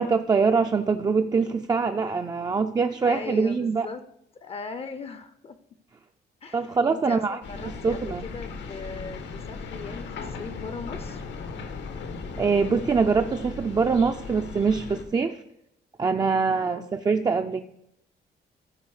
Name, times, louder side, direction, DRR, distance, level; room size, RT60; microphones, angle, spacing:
voice 1, 0.0-3.9 6.5-7.4 7.8-8.2 12.4-15.4 16.0-17.6, right 5 dB, 20° right, 5 dB, 0.3 m, -24 dB
voice 2, 3.0-4.0 4.4-5.6 6.4-11.2 16.5-16.8, left 4 dB, 35° left, 12 dB, 0.5 m, -39 dB
sound 1, 7.4-15.0, left 4 dB, 85° left, 1.1 m, -37 dB
13.5 x 4.8 x 4.8 m, 0.79 s
cardioid pair, 145°, 18 cm